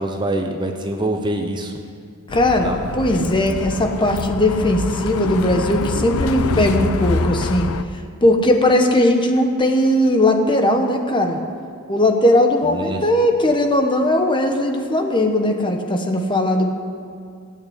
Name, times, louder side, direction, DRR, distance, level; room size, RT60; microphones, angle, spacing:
voice 1, 0.0-1.7 2.6-2.8 12.6-13.0, right 1 dB, 20° right, 4 dB, 0.8 m, -25 dB
Bus, 2.3-7.8, left 4 dB, 80° left, 0.6 m, -25 dB
voice 2, 2.3-2.7 3.0-7.7 8.2-11.4 11.9-16.8, left 1 dB, 20° left, 4 dB, 1.1 m, -18 dB
16.5 x 9.0 x 8.0 m, 2.3 s
head